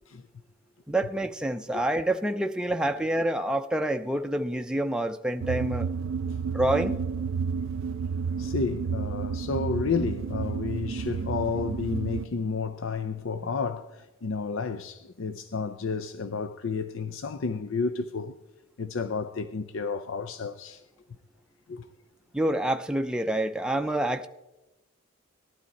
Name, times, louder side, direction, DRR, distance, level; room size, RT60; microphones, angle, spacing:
voice 1, 0.9-5.9 6.4-7.0 22.3-24.3, right 1 dB, 5° right, 0.5 m, -27 dB
sound 1, 5.4-12.3, right 5 dB, 65° right, 0.3 m, -31 dB
voice 2, 8.4-18.4 18.8-20.8 21.7-21.9, left 4 dB, 65° left, 0.5 m, -31 dB
18.5 x 12.0 x 4.1 m
head